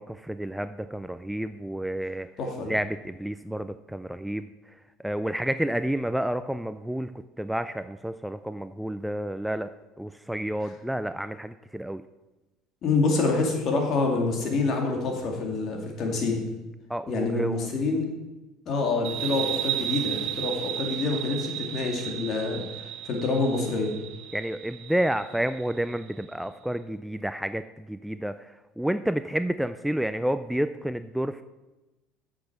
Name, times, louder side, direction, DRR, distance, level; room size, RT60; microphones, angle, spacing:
voice 1, 0.0-2.3 2.6-4.5 5.0-7.1 7.4-9.7 10.0-12.0 16.9-17.7 24.3-31.4, right 1 dB, 5° right, 11 dB, 0.3 m, -30 dB
voice 2, 2.4-2.7 12.8-16.4 17.1-18.1 18.7-22.6 23.0-23.9, left 3 dB, 50° left, 2 dB, 2.2 m, -26 dB
sound 1, 19.0-26.2, right 12 dB, 65° right, 1.0 m, -34 dB
8.4 x 6.2 x 5.9 m, 1.1 s
supercardioid pair, 100°, 0 cm